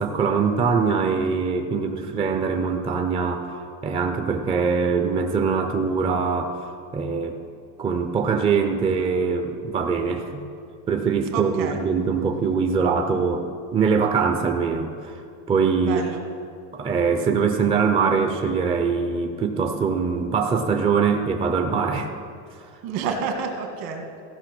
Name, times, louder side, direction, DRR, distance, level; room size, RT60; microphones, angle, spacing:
voice 1, 0.0-3.6 3.8-7.4 7.8-10.4 10.9-13.5 13.7-15.2 15.5-16.1 16.7-22.1, right 5 dB, 15° right, 5 dB, 0.4 m, -23 dB
voice 2, 11.3-11.8 15.8-16.2 22.8-24.1, right 5 dB, 65° right, 4 dB, 1.6 m, -29 dB
14.5 x 5.8 x 6.0 m, 2.4 s
cardioid pair, 155°, 36 cm